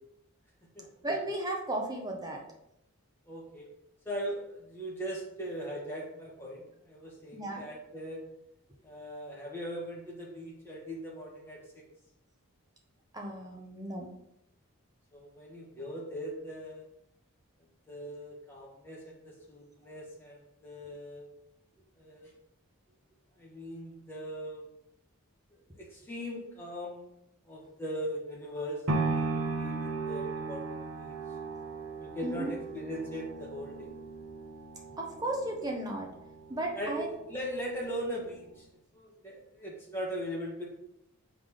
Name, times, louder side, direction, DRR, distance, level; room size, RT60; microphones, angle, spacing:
voice 1, 1.0-2.4 7.3-7.6 13.1-14.1 32.2-32.5 35.0-36.1 36.5-37.1, right 1 dB, 15° right, 0 dB, 0.9 m, -34 dB
voice 2, 3.3-3.7 4.1-8.2 8.8-11.8 15.1-16.9 17.9-21.3 22.0-22.3 23.4-24.7 25.8-27.1 27.4-31.2 32.0-33.9 36.7-38.6 38.9-40.7, equal, 10° left, -4 dB, 1.7 m, -40 dB
sound 1, 28.9-37.0 37.5-37.6, right 3 dB, 75° right, 0.9 m, -36 dB
6.9 x 3.9 x 5.0 m, 0.79 s
head